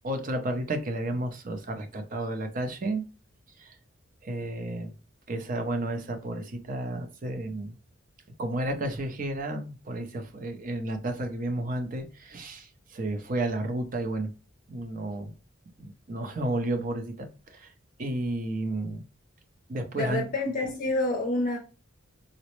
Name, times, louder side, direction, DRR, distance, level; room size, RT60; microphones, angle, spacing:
voice 1, 0.0-3.0 3.6-3.8 4.2-4.9 5.3-7.8 8.4-14.3 14.7-15.3 15.8-17.7 18.0-19.0 19.7-20.2, right 1 dB, 40° right, 6 dB, 0.5 m, -32 dB
voice 2, 19.9-21.6, left 2 dB, 40° left, 2 dB, 0.5 m, -28 dB
3.9 x 2.0 x 3.0 m, 0.34 s
head